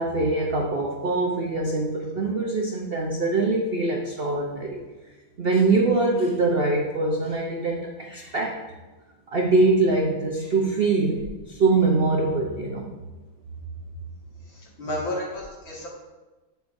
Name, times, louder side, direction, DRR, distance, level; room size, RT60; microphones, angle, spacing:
voice 1, 0.0-4.8 5.4-8.6 9.3-12.9, right 3 dB, 80° right, -1 dB, 0.5 m, -23 dB
voice 2, 14.5-15.9, left 1 dB, 80° left, -5 dB, 2.7 m, -32 dB
9.2 x 6.6 x 2.6 m, 1.2 s
omnidirectional pair, 2.1 m